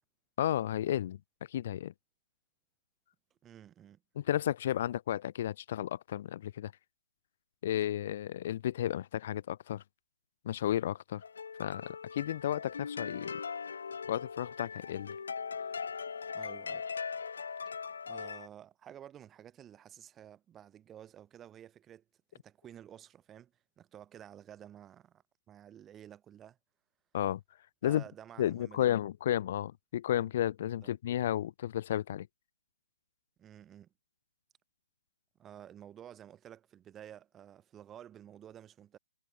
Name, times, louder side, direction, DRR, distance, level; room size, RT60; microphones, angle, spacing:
voice 1, 0.4-1.2 1.5-1.9 4.1-6.7 7.6-9.8 10.4-11.2 11.6-11.8 12.1-13.3 14.1-15.2 27.1-27.4 27.8-28.0 28.4-32.3, left 11 dB, 40° left, 1.4 m, -32 dB
voice 2, 3.4-4.0 16.3-16.9 18.0-22.0 22.3-26.6 27.8-28.9 30.8-30.9 33.4-33.9 35.4-39.0, right 10 dB, 10° right, 6.3 m, -52 dB
sound 1, 11.2-18.5, left 6 dB, 80° left, 2.3 m, -40 dB
hypercardioid pair, 170°, 0 cm